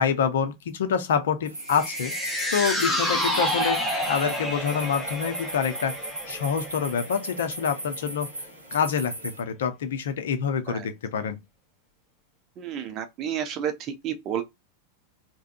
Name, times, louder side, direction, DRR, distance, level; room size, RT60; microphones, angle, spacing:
voice 1, 0.0-2.1 2.5-5.9 6.3-11.4, left 7 dB, 60° left, 0.6 m, -27 dB
sound 1, 1.4-9.4, right 1 dB, 85° right, 0.8 m, -38 dB
sound 2, 1.6-8.1 8.4-8.5, equal, 5° left, 0.9 m, -29 dB
voice 2, 12.6-13.7 14.0-14.4, right 9 dB, 35° right, 0.5 m, -30 dB
3.5 x 2.1 x 2.3 m
figure-of-eight pair, 90°, 0 cm